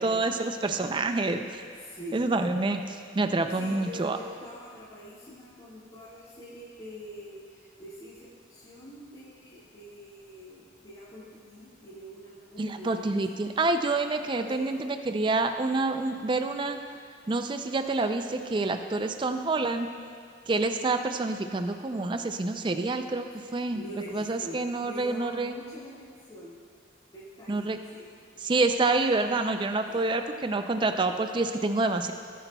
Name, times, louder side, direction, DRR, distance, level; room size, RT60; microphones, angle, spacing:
voice 1, 0.0-1.6 2.1-4.2 12.6-16.8 17.3-19.9 20.5-23.3 23.5-23.8 24.1-25.5 27.5-27.8 28.4-32.1, right 3 dB, 25° right, 7 dB, 0.4 m, -27 dB
voice 2, 1.7-2.3 3.0-3.2 3.5-13.2 14.4-14.8 23.3-26.5 27.1-27.6 27.9-28.0 29.9-30.0, equal, 30° left, -11 dB, 1.8 m, -45 dB
17.5 x 10.0 x 2.3 m, 2.1 s
head